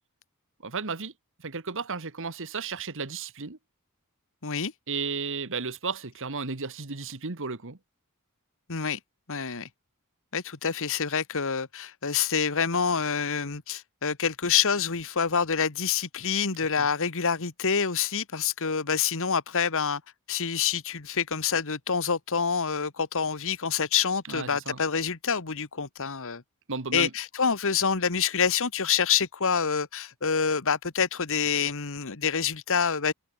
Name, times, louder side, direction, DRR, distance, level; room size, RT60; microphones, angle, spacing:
voice 1, 0.6-1.1 1.4-3.6 4.9-7.8 16.8-16.9 24.3-24.8 26.7-27.1, right 4 dB, 60° right, 1.7 m, -33 dB
voice 2, 8.7-9.0 9.3-9.7 10.3-20.0 20.3-26.4 26.9-33.1, left 6 dB, 65° left, 1.6 m, -27 dB
head